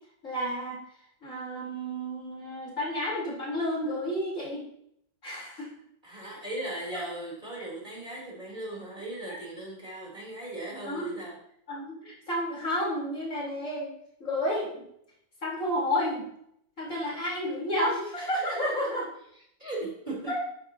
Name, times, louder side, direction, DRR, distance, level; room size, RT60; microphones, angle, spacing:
voice 1, 0.2-0.8 1.2-4.7 5.2-5.7 6.9-7.0 9.3-9.4 10.8-11.2 11.7-13.9 14.2-14.8 15.4-16.3 16.8-19.1 20.3-20.4, equal, 45° left, -5 dB, 4.6 m, -31 dB
voice 2, 6.0-11.4 19.6-20.4, right 1 dB, 25° right, -5 dB, 4.2 m, -38 dB
13.5 x 12.5 x 3.0 m, 0.72 s
omnidirectional pair, 1.9 m